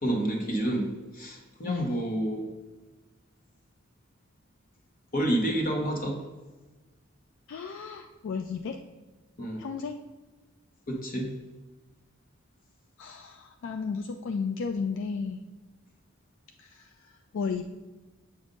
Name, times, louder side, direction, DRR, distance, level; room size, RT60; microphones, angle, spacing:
voice 1, 0.0-2.4 5.1-6.2 9.4-9.6 10.9-11.3, right 1 dB, 45° left, 1 dB, 1.1 m, -29 dB
voice 2, 1.7-2.0 7.5-8.8 9.6-10.0 13.0-15.4 16.6-17.6, left 5 dB, 60° left, 6 dB, 0.3 m, -33 dB
7.3 x 2.6 x 5.2 m, 1.2 s
head